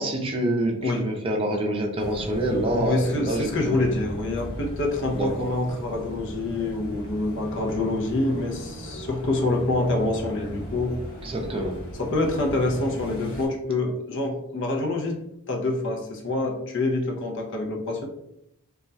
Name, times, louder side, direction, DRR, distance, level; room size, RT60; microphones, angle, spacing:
voice 1, 0.0-4.1 5.1-5.4 11.2-11.8, right 1 dB, 25° right, 1 dB, 0.5 m, -27 dB
sound 1, 2.0-13.5, equal, 70° left, 1.1 m, -38 dB
voice 2, 2.7-11.0 12.0-15.2 15.5-18.1, left 2 dB, 55° left, 1 dB, 0.5 m, -26 dB
2.3 x 2.2 x 3.9 m, 0.80 s
head